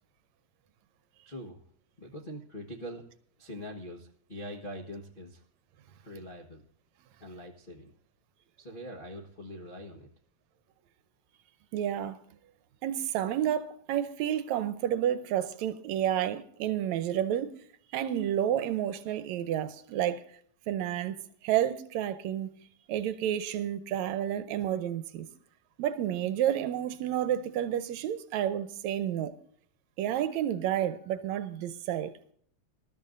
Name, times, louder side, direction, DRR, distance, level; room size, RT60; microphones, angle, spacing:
voice 1, 1.2-1.6 2.0-3.0 3.4-5.4 6.0-6.6 7.2-7.9 8.6-10.1, equal, 45° left, 0.6 m, -43 dB
voice 2, 11.7-12.2 12.8-17.5 17.9-20.2 20.7-21.2 21.4-22.5 22.9-25.3 25.8-29.3 30.0-32.1, right 11 dB, 80° right, 2.0 m, -30 dB
19.5 x 13.0 x 2.6 m
omnidirectional pair, 3.4 m